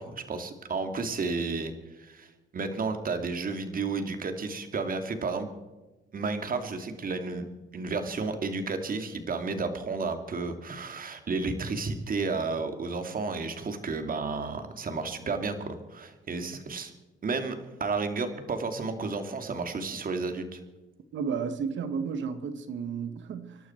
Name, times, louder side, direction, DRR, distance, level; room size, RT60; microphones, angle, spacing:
voice 1, 0.0-5.5 6.1-7.4 7.7-16.9 17.2-20.6, right 4 dB, 45° right, 2.5 m, -32 dB
voice 2, 21.1-23.6, right 6 dB, 70° right, 1.7 m, -32 dB
26.5 x 12.0 x 4.6 m
cardioid pair, 90°, 20 cm